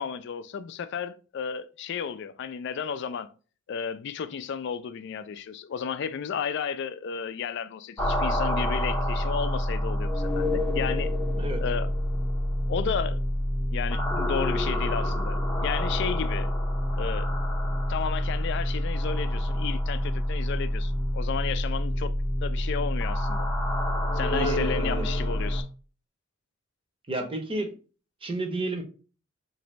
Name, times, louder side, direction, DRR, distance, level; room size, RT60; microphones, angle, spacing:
voice 1, 0.0-3.3 3.7-11.1 11.6-11.9 12.7-13.2 13.7-16.5 17.0-17.3 17.9-22.2 22.4-23.5 24.1-25.7, left 7 dB, 60° left, 0.3 m, -33 dB
sound 1, 8.0-25.6, left 1 dB, 15° left, 0.6 m, -27 dB
voice 2, 24.3-25.1 27.1-27.7 28.2-28.8, right 2 dB, 25° right, 0.7 m, -31 dB
3.9 x 2.6 x 3.1 m
head